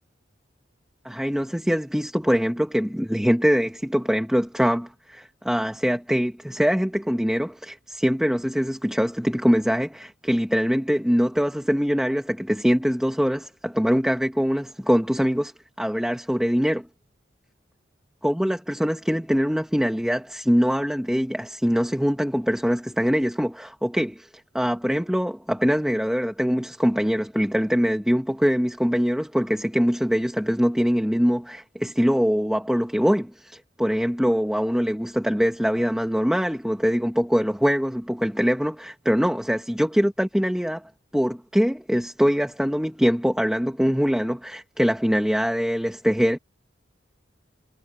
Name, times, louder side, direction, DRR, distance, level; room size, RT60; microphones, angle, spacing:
voice 1, 1.0-15.5 15.8-16.9 18.2-24.3 24.5-40.8 41.1-46.4, equal, 5° right, 1.2 m, -23 dB
head